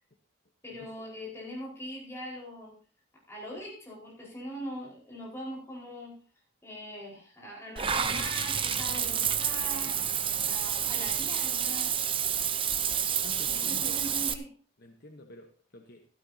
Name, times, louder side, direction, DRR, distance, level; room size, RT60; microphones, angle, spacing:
voice 1, 0.6-2.7 3.3-6.2 6.6-10.1 10.4-12.0 13.5-14.5, equal, 15° left, -4 dB, 4.8 m, -41 dB
Water / Bathtub (filling or washing), 7.8-14.3, right 8 dB, 25° right, 0.7 m, -29 dB
voice 2, 13.2-14.0 14.8-16.1, left 2 dB, 50° left, 3 dB, 1.1 m, -48 dB
15.5 x 12.5 x 2.8 m, 0.39 s
head